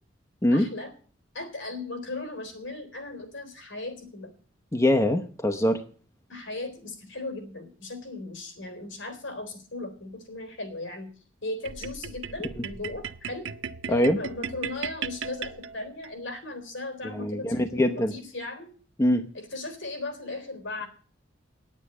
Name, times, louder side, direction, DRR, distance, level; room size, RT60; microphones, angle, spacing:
voice 1, 0.5-0.9 1.3-4.3 6.3-11.1 11.4-13.5 13.9-18.7 19.3-20.9, left 2 dB, 70° left, 7 dB, 3.7 m, -37 dB
voice 2, 4.7-5.8 12.6-12.7 13.9-14.2 17.1-18.1 19.0-19.2, left 1 dB, 15° left, 4 dB, 0.8 m, -23 dB
sound 1, 11.7-16.1, right 6 dB, 85° right, 0.7 m, -37 dB
9.7 x 8.3 x 9.8 m, 0.42 s
head